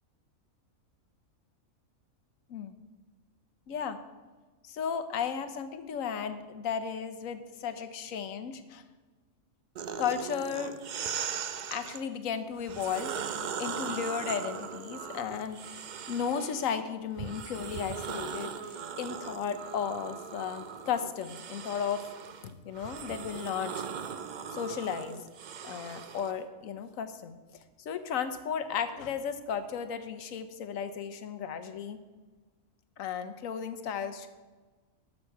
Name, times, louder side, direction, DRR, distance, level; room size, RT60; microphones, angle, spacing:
voice 1, 3.7-4.0 4.6-8.8 10.0-10.8 11.7-22.1 22.4-23.8 24.5-25.2 25.6-27.3 27.8-32.0 33.0-34.3, left 7 dB, 75° left, 10 dB, 1.2 m, -35 dB
sound 1, 9.8-12.0 12.6-16.7 17.2-26.3, right 7 dB, 75° right, 0.4 m, -39 dB
12.5 x 6.4 x 4.6 m, 1.3 s
omnidirectional pair, 1.4 m